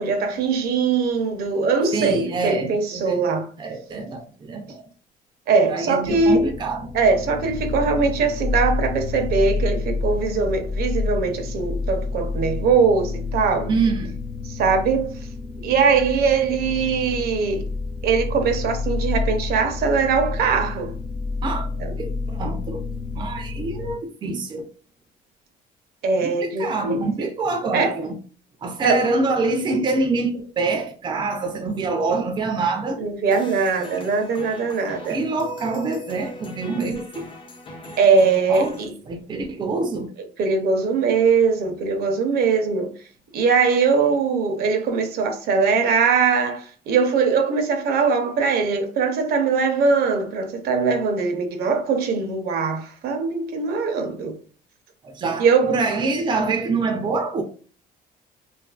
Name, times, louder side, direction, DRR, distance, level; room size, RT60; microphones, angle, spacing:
voice 1, 0.0-3.5 5.5-6.4 6.9-13.7 14.5-15.1 15.6-17.7 18.0-20.9 21.8-21.9 26.0-27.0 27.7-27.9 28.8-29.0 33.0-35.2 38.0-38.9 40.4-42.9 43.3-54.4 55.4-55.7, right 5 dB, 65° right, 0.6 m, -21 dB
voice 2, 1.9-3.2 3.6-4.8 5.7-6.9 13.7-14.1 21.4-21.7 22.0-22.8 23.1-24.6 26.2-28.1 28.6-33.0 35.1-37.3 38.5-38.8 39.1-40.1 42.3-42.4 55.0-57.4, right 3 dB, 25° right, 0.4 m, -25 dB
sound 1, 6.0-23.9, left 3 dB, 55° left, 1.0 m, -29 dB
sound 2, 33.3-38.9, left 1 dB, 30° left, 0.5 m, -40 dB
2.6 x 2.4 x 2.3 m
cardioid pair, 110°, 17 cm